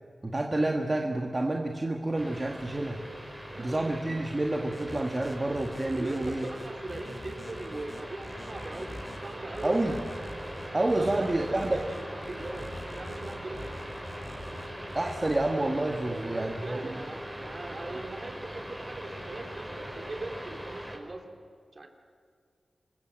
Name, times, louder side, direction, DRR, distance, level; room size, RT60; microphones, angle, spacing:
voice 1, 0.2-3.0 3.6-6.4 9.6-10.0 10.7-11.8 14.9-17.0, right 2 dB, 30° right, 1 dB, 1.9 m, -29 dB
sound 1, 2.2-21.0, equal, 5° right, 5.1 m, -41 dB
voice 2, 3.5-3.9 6.0-10.1 11.0-13.7 16.0-21.2 21.7-21.9, right 2 dB, 50° right, 3 dB, 3.3 m, -40 dB
sound 2, 4.7-15.4, left 1 dB, 25° left, 4.5 m, -44 dB
27.0 x 21.0 x 7.8 m, 2.1 s
wide cardioid pair, 70°, 0 cm